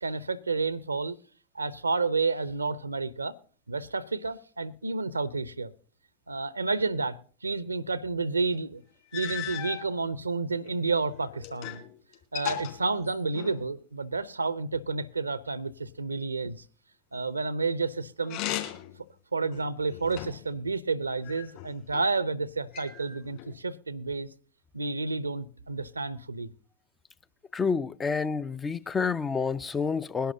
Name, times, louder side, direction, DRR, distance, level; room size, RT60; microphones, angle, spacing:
voice 1, 0.0-1.2 1.5-3.3 3.7-5.7 6.3-8.8 9.1-11.8 12.3-16.6 17.1-18.4 19.3-24.3 24.7-26.5, right 3 dB, 80° right, 0.7 m, -30 dB
sound 1, 8.5-8.6 9.1-9.9 10.6-11.9 12.1-13.7 18.2-19.0 19.5-20.5 21.2-22.0 22.7-23.5, left 12 dB, 50° left, 3.5 m, -37 dB
voice 2, 27.5-30.3, left 5 dB, 15° left, 0.5 m, -28 dB
21.5 x 11.5 x 2.7 m
figure-of-eight pair, 90°, 0 cm